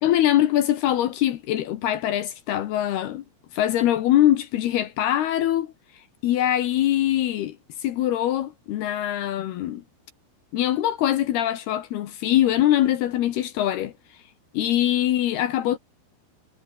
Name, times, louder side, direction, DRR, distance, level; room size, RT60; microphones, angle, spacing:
voice 1, 0.0-3.2 3.5-5.7 6.2-7.6 7.8-9.8 10.5-13.9 14.5-15.8, left 12 dB, 70° left, 2.6 m, -23 dB
omnidirectional pair, 5.9 m